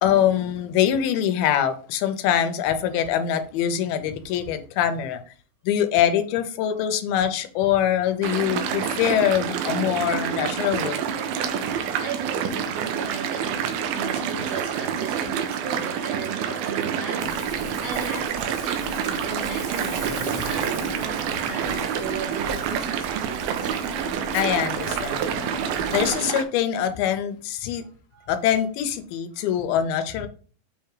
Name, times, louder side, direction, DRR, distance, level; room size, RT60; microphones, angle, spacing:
voice 1, 0.0-5.2 5.6-11.0 24.3-25.4 25.9-27.8 28.3-30.3, left 10 dB, 85° left, 2.6 m, -23 dB
sound 1, 8.2-26.4, right 7 dB, 90° right, 2.6 m, -27 dB
voice 2, 12.0-23.7 28.1-28.3 29.3-29.5, right 5 dB, 70° right, 1.5 m, -36 dB
Ocean, 17.2-26.1, equal, 5° left, 0.5 m, -39 dB
7.1 x 3.4 x 4.8 m
omnidirectional pair, 4.3 m